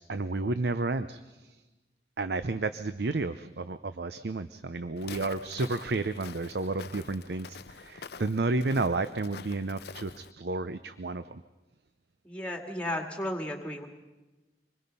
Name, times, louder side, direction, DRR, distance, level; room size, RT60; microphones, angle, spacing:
voice 1, 0.0-1.6 2.2-10.1 10.4-11.4, right 3 dB, 65° right, 11 dB, 0.7 m, -31 dB
Walk footsteps, 5.0-10.3, left 5 dB, 65° left, 0.6 m, -46 dB
voice 2, 12.2-13.9, left 1 dB, 5° left, 3 dB, 2.2 m, -34 dB
25.5 x 21.0 x 5.5 m, 1.1 s
head